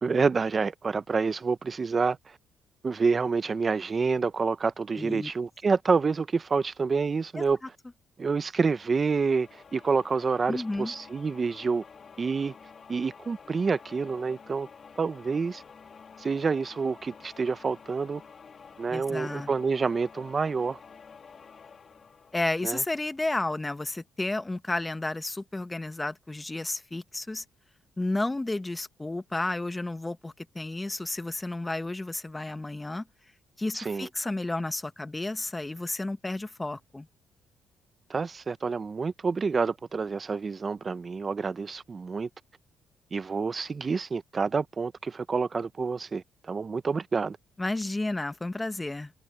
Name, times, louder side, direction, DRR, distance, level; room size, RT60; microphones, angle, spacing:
voice 1, 0.0-2.4 2.8-7.6 8.2-11.8 12.2-12.5 12.9-14.7 15.0-15.6 16.2-18.2 18.8-20.8 22.6-22.8 33.7-34.1 38.1-42.3 43.1-47.4, right 4 dB, 35° right, 0.7 m, -28 dB
voice 2, 5.0-5.3 7.4-7.5 10.5-10.9 18.9-19.5 22.3-27.4 28.0-33.0 33.6-37.1 47.6-49.1, left 2 dB, 15° left, 1.1 m, -32 dB
sound 1, 8.8-23.4, left 6 dB, 45° left, 1.6 m, -50 dB
cardioid pair, 90°, 0 cm